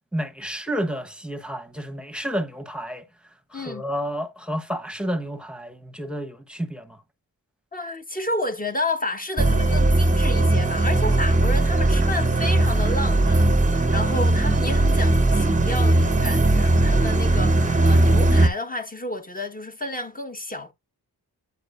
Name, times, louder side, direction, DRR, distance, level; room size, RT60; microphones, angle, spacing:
voice 1, 0.1-3.1 3.5-7.0, equal, ahead, 1.3 m, -30 dB
voice 2, 3.5-3.8 7.7-20.7, left 1 dB, 20° left, 1.4 m, -31 dB
sound 1, 9.4-18.5, right 2 dB, 20° right, 0.9 m, -19 dB
9.1 x 4.8 x 2.6 m
cardioid pair, 50°, 40 cm